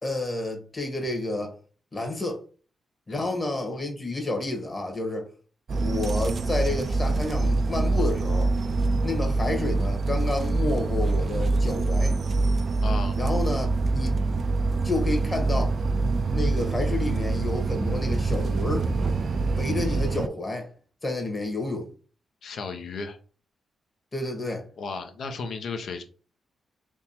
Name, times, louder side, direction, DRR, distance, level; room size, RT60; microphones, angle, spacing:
voice 1, 0.0-1.6 1.9-2.4 3.1-5.3 5.8-8.5 9.0-12.2 13.2-14.2 14.8-15.7 16.3-18.9 19.5-20.7 21.0-21.9 24.1-24.6, left 2 dB, 35° left, 1.4 m, -30 dB
sound 1, 5.7-20.3, right 3 dB, 60° right, 0.3 m, -25 dB
voice 2, 12.8-13.2 22.4-23.2 24.8-26.0, left 4 dB, 70° left, 0.6 m, -34 dB
3.5 x 2.9 x 2.8 m
supercardioid pair, 50°, 0 cm